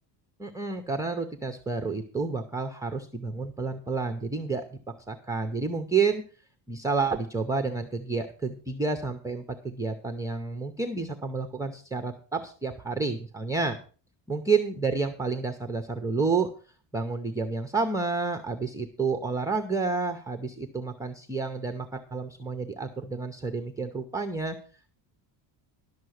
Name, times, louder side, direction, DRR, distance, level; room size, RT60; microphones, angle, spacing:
voice 1, 0.4-4.6 5.1-6.2 6.7-13.8 14.3-16.5 16.9-24.6, right 4 dB, 5° right, 5 dB, 0.5 m, -30 dB
11.5 x 6.8 x 6.3 m, 0.39 s
cardioid pair, 175°, 48 cm